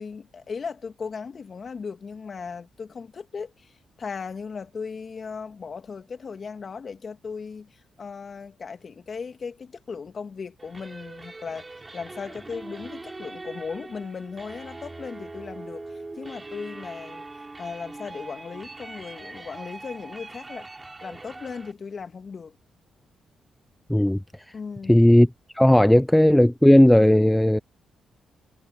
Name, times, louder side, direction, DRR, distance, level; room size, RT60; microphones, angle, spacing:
voice 1, 0.0-20.7 21.0-22.6 24.5-25.0, left 5 dB, 45° left, 2.7 m, -37 dB
sound 1, 10.6-21.7, right 2 dB, 25° right, 7.7 m, -41 dB
voice 2, 24.9-25.3 25.6-27.6, left 1 dB, 5° left, 0.3 m, -16 dB
cardioid pair, 75°, 0 cm